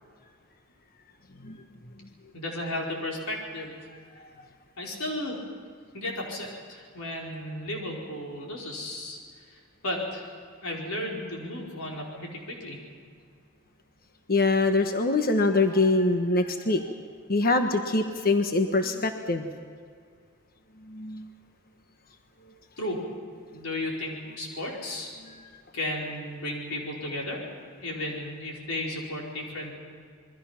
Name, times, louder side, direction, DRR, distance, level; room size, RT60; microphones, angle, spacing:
voice 1, 2.3-3.9 4.8-5.4 5.9-9.2 9.5-10.3 10.6-12.8 22.8-23.0 23.5-25.1 25.7-27.5 27.8-29.7, left 1 dB, 75° left, -2 dB, 4.9 m, -34 dB
voice 2, 14.3-16.8 17.3-19.5 20.9-21.3, left 2 dB, 45° left, 6 dB, 1.3 m, -24 dB
27.5 x 22.5 x 5.9 m, 2.1 s
head